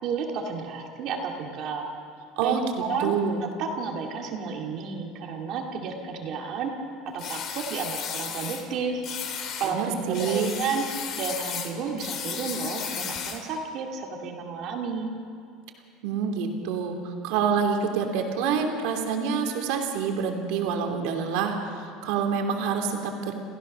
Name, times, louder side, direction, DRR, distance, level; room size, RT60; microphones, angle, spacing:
voice 1, 0.0-1.9 2.4-6.7 7.1-9.0 9.6-9.8 10.1-10.8 11.2-15.1, right 5 dB, 45° right, 2 dB, 2.2 m, -32 dB
voice 2, 3.0-3.4 9.6-10.5 16.0-17.0 17.2-23.3, right 6 dB, 70° right, 4 dB, 2.9 m, -27 dB
sound 1, 7.2-8.6 9.0-9.7 10.1-13.5, left 7 dB, 40° left, 2.2 m, -34 dB
28.5 x 15.5 x 6.5 m, 2.3 s
cardioid pair, 165°, 0 cm